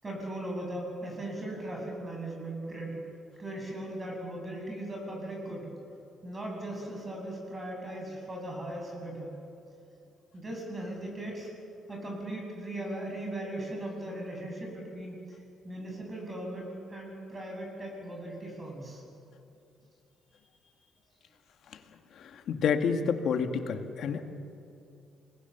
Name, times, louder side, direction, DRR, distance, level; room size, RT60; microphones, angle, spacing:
voice 1, 0.0-3.0 3.4-5.7 6.2-9.4 10.3-11.5 11.9-15.2 15.6-19.0, right 1 dB, 25° right, 0 dB, 7.7 m, -38 dB
voice 2, 22.2-24.2, left 6 dB, 70° left, 7 dB, 1.7 m, -29 dB
28.0 x 20.0 x 7.0 m, 2.6 s
cardioid pair, 95°, 0 cm